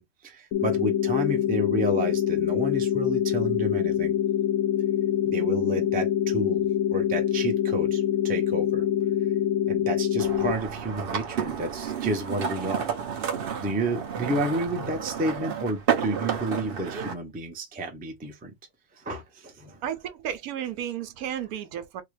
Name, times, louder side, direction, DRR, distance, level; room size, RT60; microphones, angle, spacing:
voice 1, 0.0-4.2 5.3-8.8 9.7-12.9 13.6-18.5 19.0-19.8, right 1 dB, 15° right, 0.3 m, -31 dB
sound 1, 0.5-10.5, left 10 dB, 70° left, 0.9 m, -25 dB
sound 2, 10.2-17.1, right 7 dB, 55° right, 0.6 m, -31 dB
voice 2, 19.8-22.0, right 10 dB, 75° right, 1.0 m, -33 dB
3.7 x 2.2 x 3.2 m
omnidirectional pair, 1.6 m